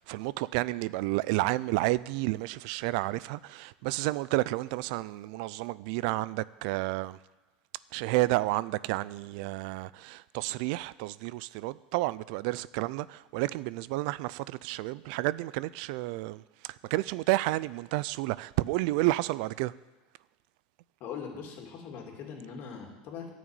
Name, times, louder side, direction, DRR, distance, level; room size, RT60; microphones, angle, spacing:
voice 1, 0.0-7.2 7.9-19.7, right 19 dB, 70° right, 0.3 m, -31 dB
voice 2, 21.0-23.3, left 6 dB, 50° left, 2.6 m, -41 dB
10.5 x 6.2 x 8.9 m
supercardioid pair, 115°, 4 cm